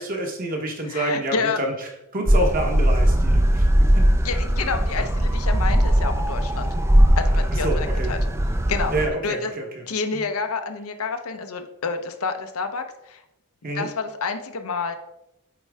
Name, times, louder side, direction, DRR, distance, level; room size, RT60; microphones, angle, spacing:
voice 1, 0.0-1.7 2.1-4.0 6.7-6.8 7.6-8.1 8.9-9.8 10.1-10.3 13.6-13.9, right 1 dB, 40° right, 2 dB, 1.1 m, -27 dB
voice 2, 0.9-1.6 4.2-6.7 7.2-8.2 8.7-8.9 9.2-9.5 9.8-13.2 13.7-15.0, left 4 dB, 75° left, 7 dB, 0.7 m, -29 dB
sound 1, 2.3-9.1, equal, 10° right, 0.4 m, -19 dB
8.6 x 4.5 x 3.5 m, 0.87 s
head